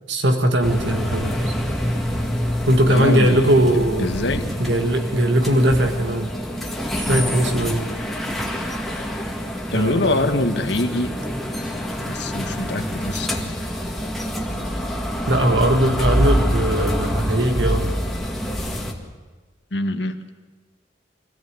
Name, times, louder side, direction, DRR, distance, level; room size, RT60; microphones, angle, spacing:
voice 1, 0.1-1.5 2.7-4.1 4.6-6.3 7.0-7.8 9.7-10.3 15.3-17.9, right 1 dB, 75° right, 5 dB, 1.7 m, -19 dB
sound 1, 0.6-18.9, equal, ahead, 2.0 m, -26 dB
voice 2, 2.9-3.6 4.0-4.4 9.7-11.1 12.0-13.5 19.7-20.2, left 2 dB, 70° left, 7 dB, 1.5 m, -24 dB
24.0 x 16.0 x 9.7 m, 1.4 s
head